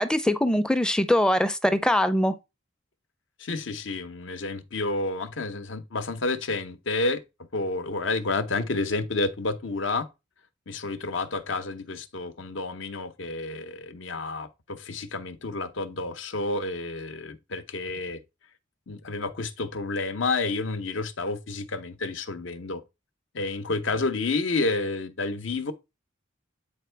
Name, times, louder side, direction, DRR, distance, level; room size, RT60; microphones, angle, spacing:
voice 1, 0.0-2.3, left 1 dB, 5° left, 0.5 m, -22 dB
voice 2, 3.4-7.2 7.5-10.1 10.7-18.2 18.9-22.8 23.3-25.7, left 3 dB, 65° left, 0.8 m, -30 dB
8.6 x 4.5 x 3.3 m
head